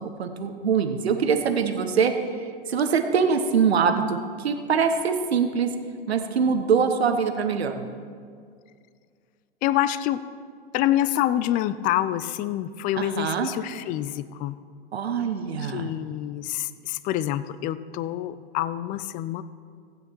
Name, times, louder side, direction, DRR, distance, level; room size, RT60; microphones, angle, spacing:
voice 1, 0.0-2.1 2.4-5.7 6.1-7.9 13.0-13.5 14.9-15.9, right 6 dB, 80° right, 7 dB, 1.0 m, -24 dB
voice 2, 9.6-10.2 10.7-14.6 15.6-19.4, left 13 dB, 25° left, 15 dB, 0.4 m, -27 dB
15.5 x 9.2 x 4.5 m, 2.1 s
hypercardioid pair, 105°, 31 cm